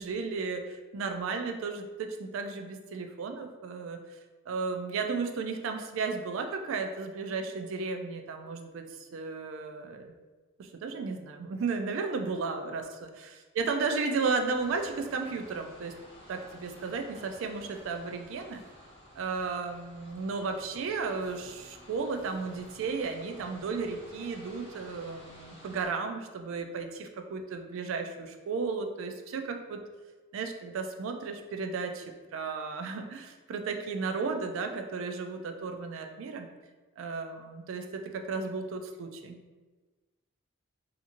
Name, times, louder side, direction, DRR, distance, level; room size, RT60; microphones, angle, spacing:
voice 1, 0.0-4.2 4.5-10.1 10.6-12.8 13.5-15.9 16.3-18.6 19.1-29.8 30.3-36.5 37.0-39.4, right 4 dB, 70° right, 6 dB, 0.3 m, -34 dB
sound 1, 14.5-25.9, equal, 25° left, 0.6 m, -53 dB
2.8 x 2.5 x 2.5 m, 1.3 s
head